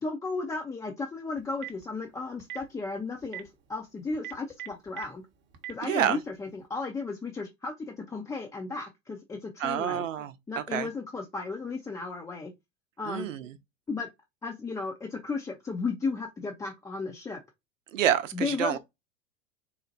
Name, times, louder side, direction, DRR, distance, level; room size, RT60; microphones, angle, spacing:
voice 1, 0.0-5.2 5.7-10.0 10.5-12.5 13.0-13.3 13.9-14.1 14.4-17.4 18.3-18.8, left 4 dB, 10° left, 0.4 m, -34 dB
Telephone, 1.4-1.8 2.4-2.6 3.2-3.4 4.1-5.0 5.5-5.7, right 14 dB, 30° right, 0.7 m, -38 dB
voice 2, 5.8-6.2 9.6-10.9 13.0-13.5 17.9-18.8, right 10 dB, 70° right, 0.7 m, -28 dB
4.1 x 2.0 x 2.7 m
figure-of-eight pair, 90°, 39 cm